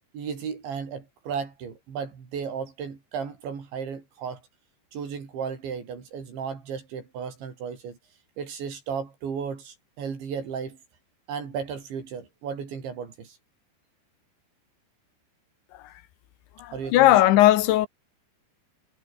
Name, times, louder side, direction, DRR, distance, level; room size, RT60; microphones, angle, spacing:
voice 1, 0.1-4.4 4.9-8.0 8.4-10.8 11.3-13.4 16.7-17.2, right 6 dB, 85° right, 7.3 m, -34 dB
voice 2, 16.6-17.9, left 14 dB, 90° left, 3.7 m, -18 dB
omnidirectional pair, 5.1 m